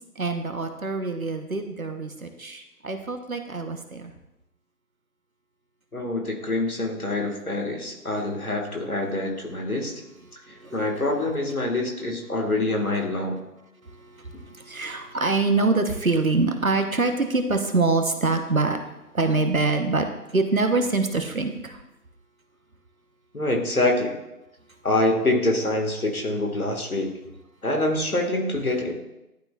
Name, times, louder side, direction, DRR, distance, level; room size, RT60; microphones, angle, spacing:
voice 1, 0.2-4.1 10.5-10.9 13.9-18.8 19.1-20.1 20.3-21.8, right 3 dB, 60° right, 6 dB, 0.9 m, -25 dB
voice 2, 5.9-10.0 10.7-13.4 23.3-24.2 24.8-27.1 27.6-28.9, left 2 dB, 65° left, 1 dB, 1.6 m, -25 dB
11.5 x 3.8 x 2.3 m, 0.94 s
figure-of-eight pair, 175°, 47 cm